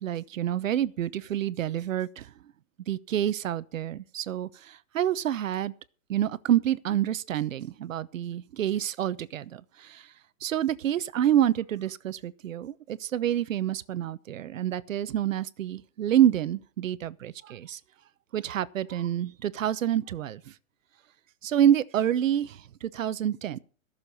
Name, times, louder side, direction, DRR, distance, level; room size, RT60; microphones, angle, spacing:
voice 1, 0.0-2.3 2.9-5.7 6.1-10.0 10.4-17.8 18.3-20.4 21.4-23.6, right 11 dB, 75° right, 1.0 m, -27 dB
15.0 x 6.9 x 6.9 m
hypercardioid pair, 180°, 40 cm